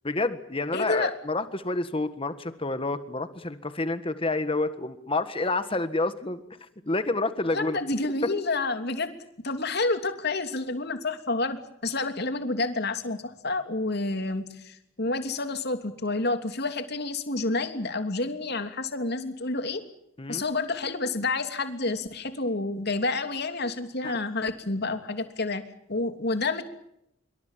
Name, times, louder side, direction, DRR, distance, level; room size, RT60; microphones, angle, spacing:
voice 1, 0.0-6.4 6.8-7.8 8.2-8.3 20.2-20.4 24.0-24.1, left 2 dB, 25° left, 11 dB, 1.6 m, -28 dB
voice 2, 0.7-1.2 7.5-9.2 9.4-11.6 11.8-19.8 20.3-25.6 25.9-26.6, left 3 dB, 55° left, 8 dB, 3.0 m, -29 dB
27.0 x 24.0 x 7.5 m, 0.79 s
head